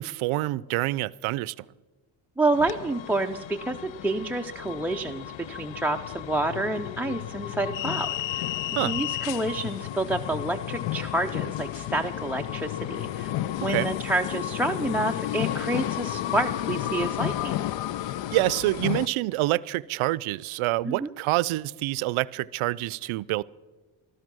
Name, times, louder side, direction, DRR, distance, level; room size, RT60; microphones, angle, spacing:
voice 1, 0.0-1.7 8.8-9.0 13.7-13.9 18.3-23.4, right 18 dB, 80° right, 0.5 m, -27 dB
voice 2, 2.4-13.3 13.6-17.6 20.8-21.1, right 2 dB, 5° right, 0.4 m, -29 dB
sound 1, 2.5-19.1, left 13 dB, 65° left, 0.6 m, -32 dB
15.0 x 12.5 x 6.2 m
cardioid pair, 110°, 49 cm